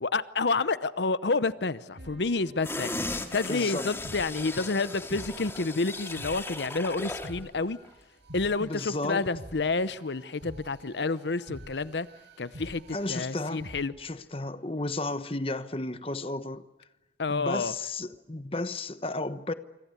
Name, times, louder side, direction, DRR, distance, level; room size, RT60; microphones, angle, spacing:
voice 1, 0.0-7.8 8.3-12.1 12.4-12.8 13.1-13.9 17.2-17.7, left 3 dB, 80° left, 0.8 m, -29 dB
sound 1, 2.0-13.9, equal, 85° right, 6.9 m, -48 dB
sound 2, 2.6-7.4 7.7-7.9, left 2 dB, 15° left, 2.2 m, -37 dB
voice 2, 3.5-3.9 8.6-9.3 12.9-13.7 14.0-16.9 17.3-19.5, left 2 dB, 30° left, 1.1 m, -33 dB
27.0 x 25.5 x 8.3 m
head